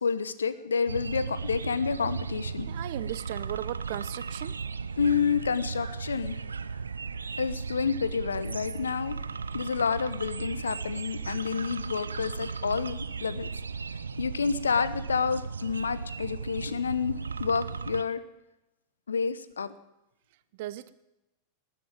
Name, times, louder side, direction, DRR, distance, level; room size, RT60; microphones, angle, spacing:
voice 1, 0.0-2.7 5.0-6.4 7.4-9.2 9.5-13.5 14.2-18.2 19.1-19.7, left 6 dB, 70° left, 14 dB, 1.0 m, -29 dB
sound 1, 0.9-18.0, right 5 dB, 75° right, 0.6 m, -36 dB
voice 2, 2.7-4.5 20.6-21.0, right 14 dB, 50° right, 15 dB, 0.8 m, -36 dB
19.5 x 7.8 x 8.8 m, 0.93 s
figure-of-eight pair, 90°, 0 cm